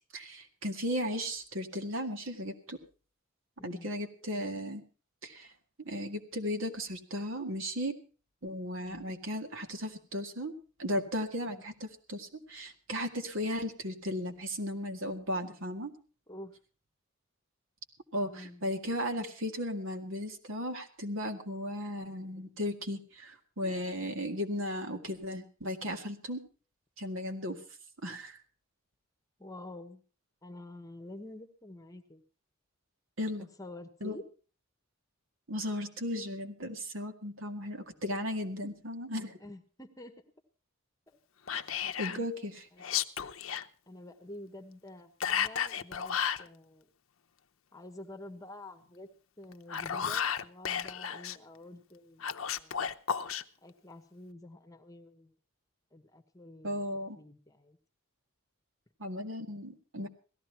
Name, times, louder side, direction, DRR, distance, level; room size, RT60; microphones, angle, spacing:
voice 1, 0.0-2.8 3.6-4.8 5.2-5.5 5.8-8.0 8.4-10.5 10.8-15.9 18.1-26.4 27.0-27.6 28.0-28.4 33.2-33.5 34.0-34.2 35.5-39.4 42.0-42.6 56.6-57.2 59.0-60.1, equal, 65° right, 5 dB, 1.9 m, -36 dB
voice 2, 3.6-3.9 8.8-9.1 16.3-16.5 18.2-18.6 29.4-30.0 30.4-32.2 33.4-34.2 39.4-40.2 41.1-41.2 42.1-42.3 42.7-42.9 43.9-46.9 47.7-49.1 49.4-52.8 53.6-55.3 55.9-56.8 57.2-57.8, left 1 dB, 15° left, 6 dB, 1.3 m, -48 dB
Whispering, 41.5-42.2 42.8-43.7 45.2-46.5 49.5-51.4 52.2-53.4, left 8 dB, 70° left, 0.7 m, -33 dB
17.0 x 13.5 x 4.5 m, 0.37 s
head